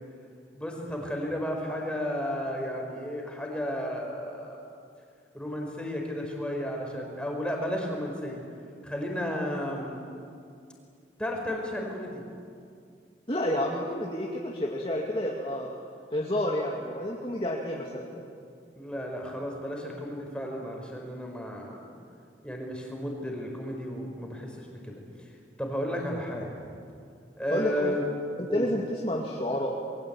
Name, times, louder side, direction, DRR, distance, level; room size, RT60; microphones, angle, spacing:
voice 1, 0.5-4.6 5.3-8.4 8.8-10.0 11.2-12.2 18.8-21.8 22.4-24.9 25.6-26.7 27.4-28.0 28.5-28.7, equal, 5° left, 1 dB, 4.9 m, -33 dB
voice 2, 13.3-15.7 16.1-18.2 27.5-28.0 28.5-29.7, left 1 dB, 30° left, -2 dB, 2.3 m, -30 dB
28.0 x 22.5 x 8.8 m, 2.4 s
head